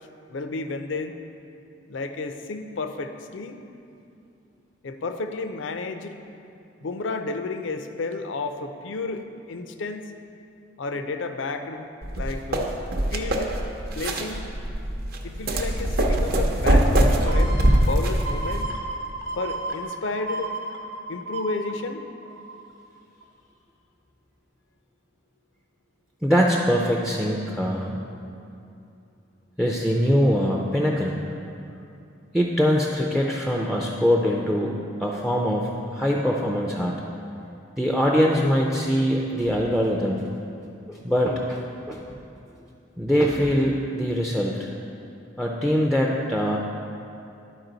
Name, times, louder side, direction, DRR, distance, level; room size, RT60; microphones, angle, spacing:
voice 1, 0.3-1.1 1.9-3.6 4.8-6.2 6.8-10.1 10.8-11.9 12.1-12.8 13.1-13.6 13.9-14.4 15.2-18.8 19.4-20.5 21.1-22.1, left 3 dB, 70° left, 7 dB, 0.5 m, -31 dB
sound 1, 12.0-18.6, right 1 dB, 50° right, 0.6 m, -22 dB
sound 2, 17.3-22.8 23.2-23.3, right 2 dB, 75° right, 0.9 m, -34 dB
voice 2, 26.2-28.0 29.6-31.2 32.3-34.7 35.0-37.0 37.8-40.3 40.9-42.0 43.0-44.7 45.4-46.6, equal, ahead, -1 dB, 0.4 m, -23 dB
11.5 x 4.7 x 3.9 m, 2.6 s
head